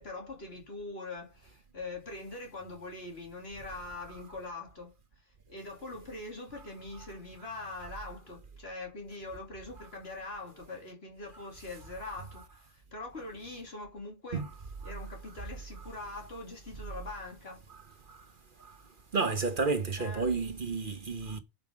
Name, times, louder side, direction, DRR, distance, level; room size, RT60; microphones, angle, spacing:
voice 1, 0.0-5.0 5.5-14.5 14.8-17.6 20.0-20.4, left 2 dB, 55° left, 3.0 m, -43 dB
voice 2, 19.1-21.4, right 4 dB, 45° right, 1.2 m, -31 dB
11.0 x 5.5 x 5.1 m
omnidirectional pair, 1.2 m